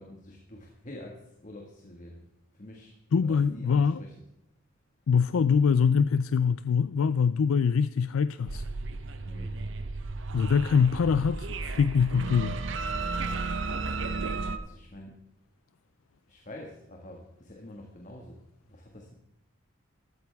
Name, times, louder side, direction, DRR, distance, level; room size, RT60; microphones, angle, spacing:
voice 1, 0.0-2.2 2.5-2.9 3.2-4.2 9.2-9.7 14.5-15.2 16.3-19.1, left 1 dB, 40° left, 1.7 m, -47 dB
voice 2, 3.1-4.0 5.1-8.6 10.3-12.6, left 6 dB, 90° left, 0.4 m, -24 dB
sound 1, 8.5-14.6, right 3 dB, 65° right, 0.9 m, -33 dB
14.0 x 13.5 x 3.5 m
head